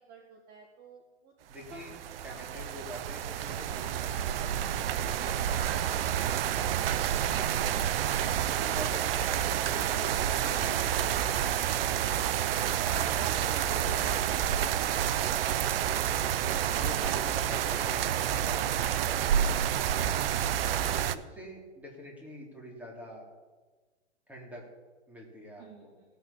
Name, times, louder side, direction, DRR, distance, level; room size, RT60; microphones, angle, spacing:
voice 1, 0.1-1.3 1.7-1.8 2.3-2.6 25.6-25.8, right 5 dB, 25° right, 2 dB, 1.6 m, -54 dB
voice 2, 1.5-6.6 7.4-7.8 8.3-11.1 12.7-14.9 16.6-19.5 20.9-23.2 24.3-24.6 25.1-25.9, equal, 5° right, -2 dB, 3.3 m, -45 dB
sound 1, 1.7-21.1, right 10 dB, 55° right, 0.7 m, -29 dB
16.5 x 6.9 x 7.3 m, 1.3 s
hypercardioid pair, 135°, 35 cm